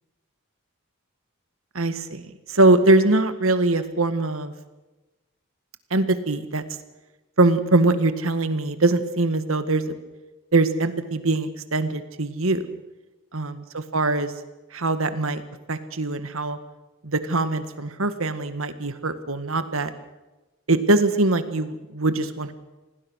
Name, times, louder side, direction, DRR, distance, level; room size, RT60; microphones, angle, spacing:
voice 1, 1.7-4.5 5.9-6.6 7.4-9.8 10.5-12.8 13.3-14.3 14.7-15.4 15.7-16.6 17.0-19.9 20.7-22.5, right 2 dB, 75° right, 10 dB, 1.8 m, -22 dB
26.5 x 18.0 x 6.4 m, 1.1 s
head